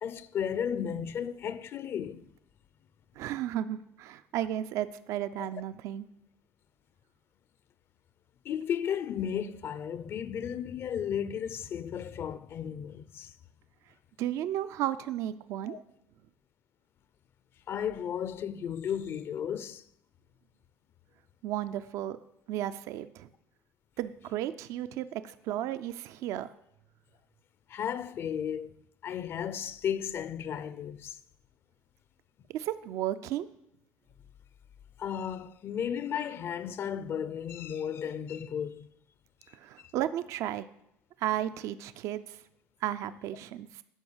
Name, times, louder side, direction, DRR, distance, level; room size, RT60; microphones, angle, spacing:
voice 1, 0.0-2.3 5.4-5.5 8.4-13.3 15.7-15.8 17.7-19.8 27.7-28.7 29.0-31.2 35.0-38.9 39.8-39.9, left 8 dB, 50° left, 0.5 m, -34 dB
voice 2, 3.2-6.0 14.2-15.8 21.4-22.2 22.5-23.3 24.0-26.5 32.5-33.5 39.5-40.7 41.2-42.4 42.8-43.8, right 12 dB, 70° right, 0.5 m, -34 dB
12.0 x 5.5 x 7.9 m
cardioid pair, 120°, 5 cm